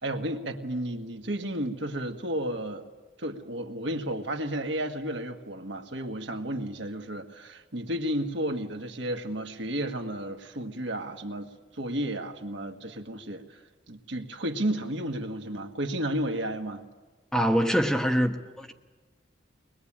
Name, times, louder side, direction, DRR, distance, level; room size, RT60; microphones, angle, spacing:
voice 1, 0.0-2.9 3.2-13.6 13.9-16.8, right 1 dB, 65° right, 4 dB, 1.8 m, -32 dB
voice 2, 17.3-18.7, equal, 5° left, 3 dB, 1.1 m, -24 dB
23.0 x 21.0 x 8.8 m, 1.3 s
head